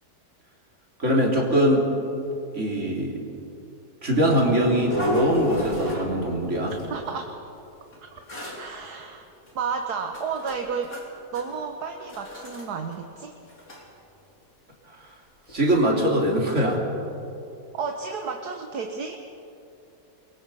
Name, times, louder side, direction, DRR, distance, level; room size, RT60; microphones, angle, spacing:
voice 1, 1.0-1.9 2.5-3.2 4.0-6.7 15.5-16.8, right 1 dB, 45° right, -1 dB, 3.8 m, -22 dB
sound 1, 4.2-6.4 6.6-7.1 7.9-8.0 8.3-8.6 9.4-9.5 10.1-11.1 11.3-11.6 12.0-12.7 12.9-13.0 13.4-13.8 15.5-15.6 16.0-16.1, left 1 dB, 55° left, 4.6 m, -31 dB
voice 2, 6.9-7.4 8.0-8.2 8.6-9.3 9.6-10.9 11.3-13.4 17.7-19.2, right 5 dB, 70° right, 4 dB, 1.7 m, -32 dB
28.5 x 22.5 x 5.6 m, 2.7 s
omnidirectional pair, 1.8 m